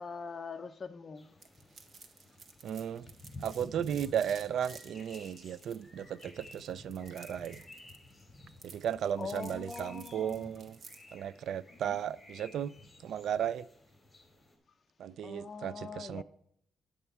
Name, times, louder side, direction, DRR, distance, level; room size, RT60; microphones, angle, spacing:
voice 1, 0.0-1.3 9.2-10.5 11.7-12.0 15.2-16.2, left 5 dB, 35° left, 0.5 m, -43 dB
sound 1, 1.2-14.5, left 2 dB, 15° left, 3.3 m, -53 dB
sound 2, 1.4-11.1, right 4 dB, 50° right, 1.1 m, -54 dB
voice 2, 2.6-3.1 3.4-7.6 8.6-10.8 11.1-12.7 13.0-13.7 15.0-16.2, right 9 dB, 75° right, 0.3 m, -35 dB
10.0 x 8.4 x 4.5 m
cardioid pair, 120°, 0 cm